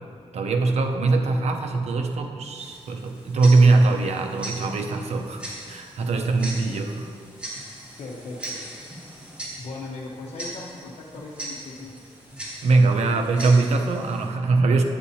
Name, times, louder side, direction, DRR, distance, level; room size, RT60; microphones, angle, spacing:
voice 1, 0.3-5.4 5.7-7.1 12.6-14.8, right 3 dB, 80° right, 4 dB, 0.7 m, -21 dB
Tick-tock, 2.6-14.3, right 1 dB, 10° right, 1.8 m, -40 dB
voice 2, 8.0-8.6 9.6-11.9, left 3 dB, 80° left, -4 dB, 0.9 m, -38 dB
10.0 x 8.6 x 2.8 m, 2.2 s
wide cardioid pair, 105°, 11 cm